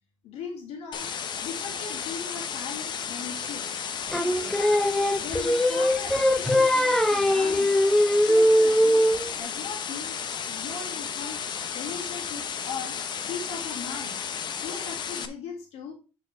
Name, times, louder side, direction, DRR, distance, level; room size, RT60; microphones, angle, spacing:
voice 1, 0.2-1.1 1.4-3.7 4.1-4.9 5.2-7.7 8.2-9.1 9.4-10.2 10.4-11.4 11.7-13.0 13.3-14.2 14.6-15.9, left 5 dB, 90° left, 1 dB, 2.2 m, -38 dB
sound 1, 0.9-15.3, left 7 dB, 45° left, 0.9 m, -33 dB
Singing, 4.1-9.3, equal, 5° left, 0.6 m, -21 dB
8.8 x 4.5 x 4.6 m, 0.34 s
cardioid pair, 155°, 10 cm